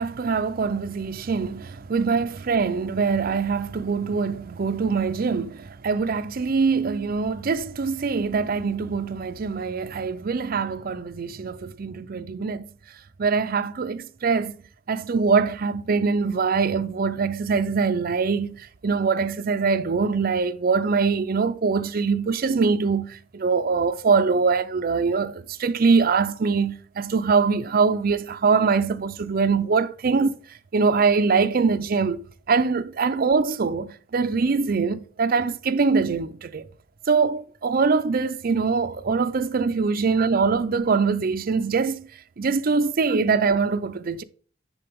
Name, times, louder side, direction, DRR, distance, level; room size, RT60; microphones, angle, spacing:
voice 1, 0.0-12.7 13.2-14.5 14.9-30.4 30.7-32.2 32.5-36.7 37.1-42.1 42.4-44.2, right 4 dB, 50° right, 0.5 m, -23 dB
9.8 x 3.9 x 3.5 m
head